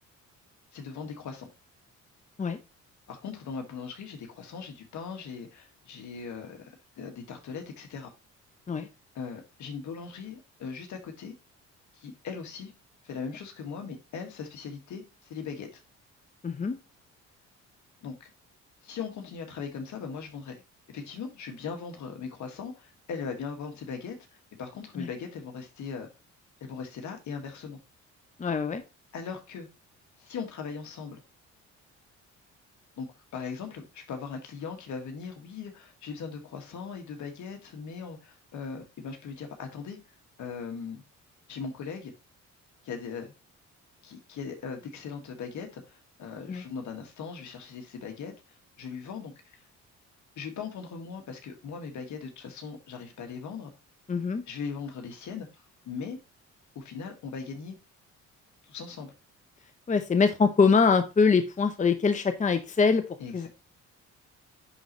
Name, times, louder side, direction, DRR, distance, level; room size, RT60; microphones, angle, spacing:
voice 1, 0.7-1.5 3.1-8.1 9.1-11.3 11.9-12.7 13.0-15.8 18.0-18.3 18.8-20.6 20.9-24.2 24.6-26.1 26.6-27.8 29.1-29.7 30.2-31.2 33.0-33.1 33.3-40.0 40.4-41.0 41.5-42.1 42.8-43.3 44.0-49.6 50.4-53.7 54.5-56.2 56.8-57.8 58.6-59.1 63.2-63.5, left 5 dB, 70° left, 1.9 m, -39 dB
voice 2, 16.4-16.8 25.0-25.1 28.4-28.8 46.5-46.6 54.1-54.4 59.9-63.0 63.3-63.5, left 5 dB, 25° left, 0.8 m, -23 dB
10.0 x 4.0 x 3.1 m
cardioid pair, 90°, 30 cm